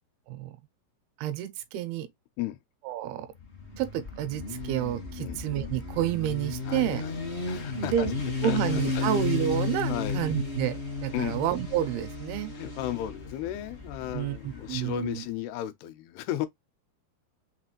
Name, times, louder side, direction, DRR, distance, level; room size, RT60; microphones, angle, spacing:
voice 1, 1.2-2.1 2.9-3.3 3.8-7.0 7.8-8.1 8.4-12.5 14.1-15.2, right 11 dB, 85° right, 2.7 m, -30 dB
Motorcycle, 3.4-15.1, left 3 dB, 50° left, 0.7 m, -34 dB
voice 2, 6.7-7.2 7.5-8.1 8.4-9.1 9.9-10.2 11.1-11.4 12.6-16.5, left 13 dB, 90° left, 2.7 m, -34 dB
6.2 x 2.5 x 2.9 m
omnidirectional pair, 4.5 m